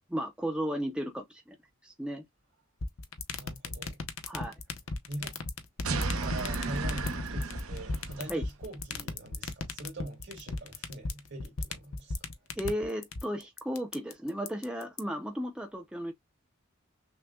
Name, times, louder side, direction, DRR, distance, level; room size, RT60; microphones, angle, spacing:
voice 1, 0.1-1.6 1.8-2.2 4.3-4.5 8.3-8.5 12.6-16.1, equal, 5° right, 0.5 m, -34 dB
sound 1, 2.8-15.0, left 4 dB, 75° left, 0.7 m, -35 dB
voice 2, 3.4-4.0 5.1-5.4 5.9-12.3, right 1 dB, 65° right, 2.3 m, -43 dB
sound 2, 5.8-8.4, right 3 dB, 85° right, 0.8 m, -33 dB
6.1 x 2.2 x 2.2 m
head